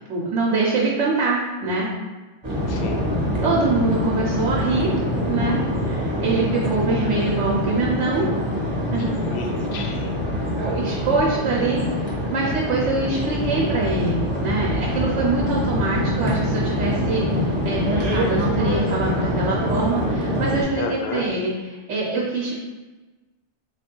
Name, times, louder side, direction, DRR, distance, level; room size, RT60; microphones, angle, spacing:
voice 1, 0.1-1.9 3.4-4.9 5.3-8.2 8.9-9.1 10.6-20.8 21.1-21.5 21.9-22.6, right 3 dB, 80° right, -4 dB, 1.0 m, -24 dB
sound 1, 2.4-20.6, left 1 dB, 25° right, 0.8 m, -24 dB
voice 2, 2.7-3.0 9.0-10.2 20.8-21.3, left 3 dB, 70° left, 3 dB, 0.8 m, -31 dB
3.6 x 2.3 x 4.3 m, 1.2 s
omnidirectional pair, 1.2 m